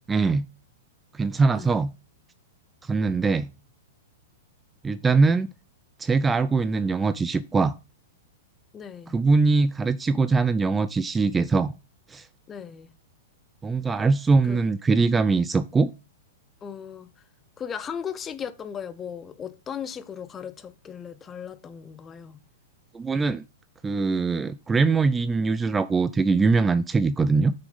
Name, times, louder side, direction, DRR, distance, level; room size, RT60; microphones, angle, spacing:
voice 1, 0.1-0.5 1.1-1.9 2.8-3.5 4.8-5.5 6.0-7.7 9.1-11.7 12.1-12.3 13.6-15.9 22.9-23.4 23.8-27.5, right 4 dB, 15° right, 0.4 m, -22 dB
voice 2, 8.7-9.1 12.5-12.9 14.5-14.6 16.6-17.1 17.6-22.4, left 8 dB, 20° left, 0.8 m, -37 dB
6.5 x 6.1 x 5.2 m
figure-of-eight pair, 105°, 0 cm